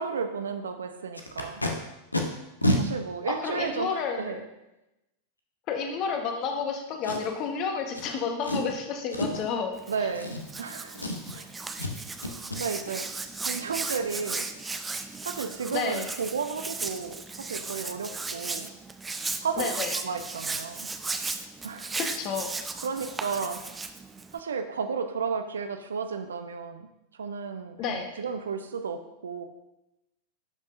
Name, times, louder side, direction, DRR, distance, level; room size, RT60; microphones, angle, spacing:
voice 1, 0.0-1.6 2.8-4.4 9.9-11.0 11.3-11.5 12.5-13.1 13.4-14.5 15.2-18.7 19.4-19.7 20.0-20.9 21.6-22.0 22.8-23.9 24.3-26.9 27.2-29.5, right 5 dB, 70° right, 7 dB, 0.7 m, -33 dB
Packing tape duct tape, 1.1-1.7 2.1-2.2 2.6-2.8 3.6-3.7 7.0-7.5 7.9-8.1 8.4-8.7 9.1-9.5 10.1-10.7 10.9-11.4 11.8-11.9 12.2-12.6 15.6-15.7 16.1-16.2 16.6-16.7 17.0-17.3 17.5-17.6, left 1 dB, 80° left, 0.9 m, -29 dB
voice 2, 3.3-4.4 5.7-9.7 10.0-10.1 15.7-16.1 19.6-19.9 22.0-22.5 27.8-28.1, left 6 dB, 40° left, 4 dB, 1.1 m, -31 dB
Hands, 9.7-24.4, right 3 dB, 10° right, 0.5 m, -36 dB
11.5 x 5.4 x 2.6 m, 0.94 s
figure-of-eight pair, 90°, 0 cm